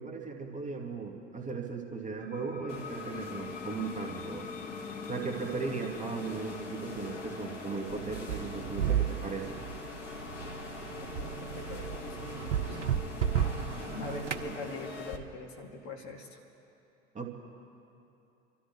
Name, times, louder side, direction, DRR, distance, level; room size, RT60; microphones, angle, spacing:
voice 1, 0.0-4.5 5.1-9.6 17.1-17.3, right 4 dB, 20° right, 1 dB, 2.1 m, -37 dB
sound 1, 2.2-13.5, left 7 dB, 20° left, 0.6 m, -47 dB
sound 2, 2.7-15.2, left 3 dB, 75° left, 1.5 m, -42 dB
sound 3, 7.9-14.5, right 9 dB, 80° right, 0.7 m, -33 dB
voice 2, 11.0-13.0 14.0-16.4, left 2 dB, 50° left, 0 dB, 2.3 m, -44 dB
29.5 x 13.5 x 3.1 m, 2.8 s
figure-of-eight pair, 70°, 36 cm